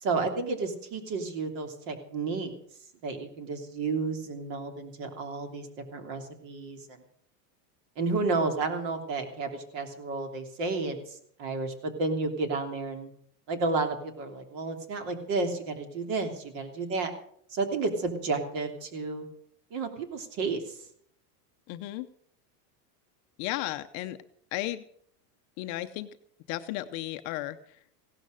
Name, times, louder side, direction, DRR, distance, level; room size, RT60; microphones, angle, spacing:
voice 1, 0.0-2.5 3.0-6.8 8.0-13.1 13.5-17.1 17.5-19.3 19.7-20.6, right 3 dB, 50° right, 5 dB, 3.2 m, -31 dB
voice 2, 21.7-22.1 23.4-24.2 24.5-24.8 25.6-26.1 26.5-27.8, left 15 dB, 35° left, 9 dB, 0.7 m, -34 dB
16.5 x 12.0 x 6.5 m, 0.65 s
supercardioid pair, 160°, 47 cm